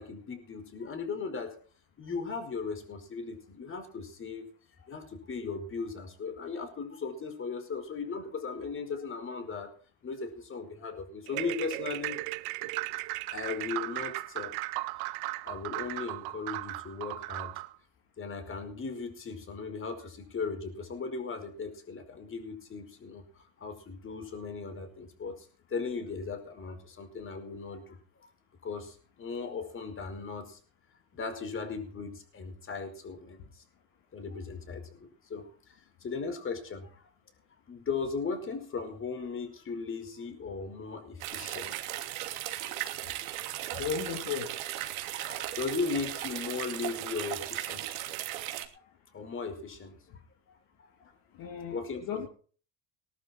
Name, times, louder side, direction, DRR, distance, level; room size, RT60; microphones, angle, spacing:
voice 1, 0.0-1.6 2.0-4.5 4.8-9.7 10.0-12.2 13.3-14.6 15.4-17.6 18.2-28.0 28.6-30.6 31.1-33.6 34.1-37.0 37.7-42.1 42.8-42.9 45.1-48.0 49.1-50.0 51.7-52.3, left 4 dB, 30° left, 7 dB, 5.1 m, -37 dB
sound 1, 11.3-17.7, right 21 dB, 65° right, 1.1 m, -36 dB
sound 2, 41.2-48.6, right 14 dB, 90° right, 3.0 m, -37 dB
voice 2, 43.8-44.5 51.3-52.3, left 7 dB, 55° left, 3 dB, 3.3 m, -35 dB
19.5 x 12.0 x 4.5 m, 0.42 s
supercardioid pair, 105°, 40 cm